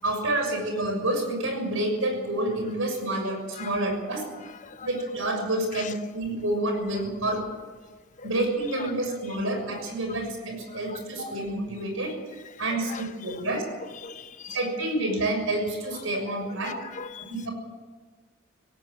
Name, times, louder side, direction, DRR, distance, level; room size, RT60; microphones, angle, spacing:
voice 1, 0.0-4.3 4.8-7.4 8.2-12.1 12.6-13.6 14.5-16.8 17.3-17.5, right 1 dB, 70° right, 4 dB, 6.8 m, -28 dB
voice 2, 12.9-13.4 14.0-14.6 16.5-17.3, left 6 dB, 35° left, 11 dB, 0.8 m, -40 dB
18.0 x 18.0 x 8.7 m, 1.4 s
head